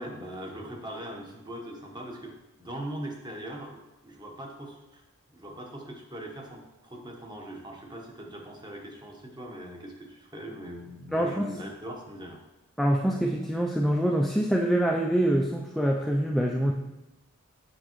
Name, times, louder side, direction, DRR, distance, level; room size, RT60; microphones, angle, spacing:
voice 1, 0.0-2.3 2.6-5.0 5.3-12.4, right 1 dB, 20° right, 1 dB, 1.0 m, -41 dB
voice 2, 11.1-11.5 12.8-16.7, right 1 dB, ahead, 0 dB, 0.3 m, -25 dB
8.0 x 6.2 x 3.0 m, 0.99 s
head